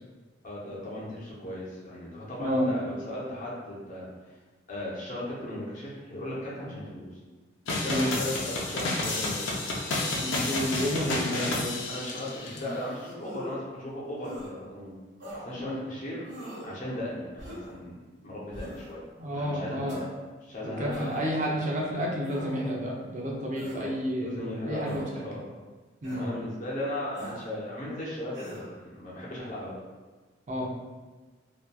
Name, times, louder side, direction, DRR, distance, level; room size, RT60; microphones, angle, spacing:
voice 1, 0.4-4.1 4.7-7.1 7.7-9.5 11.0-11.5 11.9-15.0 15.4-16.3 16.6-17.9 18.2-19.0 19.3-20.0 20.4-21.6 23.6-23.9 24.2-25.5 26.2-29.8, left 1 dB, 45° left, -6 dB, 0.7 m, -37 dB
voice 2, 2.4-2.7 7.9-8.1 10.2-11.7 15.6-15.8 19.2-20.0 20.6-25.3 26.0-26.2 30.5-30.7, equal, 40° right, -2 dB, 0.5 m, -30 dB
sound 1, 7.7-12.6, left 2 dB, 80° left, 0.5 m, -30 dB
sound 2, 13.2-13.6 14.2-14.5 15.2-15.5 16.3-16.7 17.4-17.8 18.5-18.9 19.9-20.1 20.9-21.3 22.2-22.7 23.5-23.9 24.8-25.1 26.0-26.3 27.1-27.5 28.3-28.7, right 1 dB, 75° right, 1.2 m, -41 dB
2.8 x 2.3 x 2.2 m, 1.3 s
head